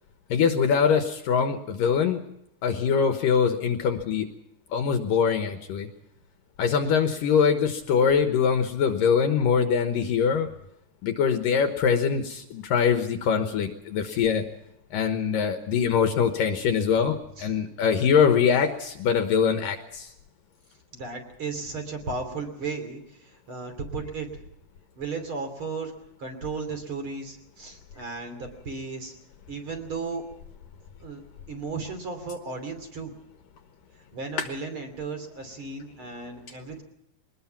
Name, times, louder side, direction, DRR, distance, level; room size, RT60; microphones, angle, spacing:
voice 1, 0.3-2.2 2.6-4.3 4.7-5.9 6.6-10.5 11.0-14.4 14.9-20.1 34.4-34.5, left 6 dB, 70° left, 6 dB, 2.6 m, -23 dB
voice 2, 20.9-24.3 25.0-25.9 26.2-29.2 29.5-30.2 31.0-31.2 31.5-33.1 34.0-36.8, right 4 dB, 35° right, 6 dB, 3.5 m, -35 dB
22.5 x 20.0 x 5.9 m, 0.81 s
omnidirectional pair, 4.4 m